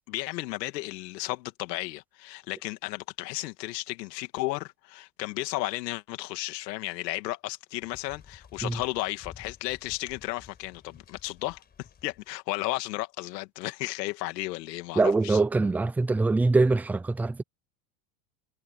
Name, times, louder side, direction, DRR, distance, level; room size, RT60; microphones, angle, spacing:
voice 1, 0.1-15.4, left 19 dB, 90° left, 2.3 m, -34 dB
sound 1, 7.8-12.3, left 7 dB, 20° left, 4.5 m, -52 dB
voice 2, 15.0-17.4, right 3 dB, 5° right, 0.4 m, -23 dB
supercardioid pair, 155°, 48 cm